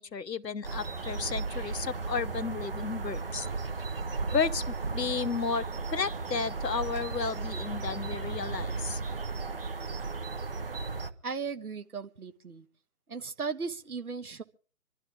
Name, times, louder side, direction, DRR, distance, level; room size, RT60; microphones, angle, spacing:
voice 1, 0.0-3.5 4.3-9.0, left 5 dB, 85° left, 0.9 m, -33 dB
sound 1, 0.6-11.1, right 3 dB, 35° right, 0.9 m, -35 dB
voice 2, 11.2-12.7 13.1-14.4, right 5 dB, 65° right, 1.5 m, -36 dB
26.0 x 12.0 x 3.6 m
figure-of-eight pair, 150°, 48 cm